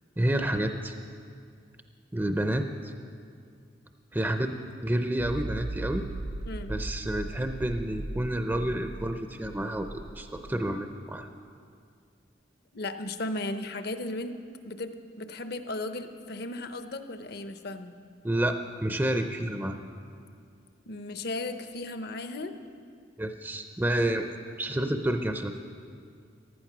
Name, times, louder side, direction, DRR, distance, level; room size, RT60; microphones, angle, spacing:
voice 1, 0.2-0.9 2.1-2.9 4.1-6.0 6.7-11.3 18.2-19.7 23.2-24.2 24.6-25.6, right 1 dB, 10° right, 6 dB, 0.5 m, -29 dB
sound 1, 5.2-10.5, right 2 dB, 85° right, 1.7 m, -38 dB
voice 2, 12.7-14.4 14.7-17.9 20.9-22.5, left 2 dB, 55° left, 9 dB, 0.8 m, -35 dB
15.0 x 12.0 x 6.0 m, 2.3 s
head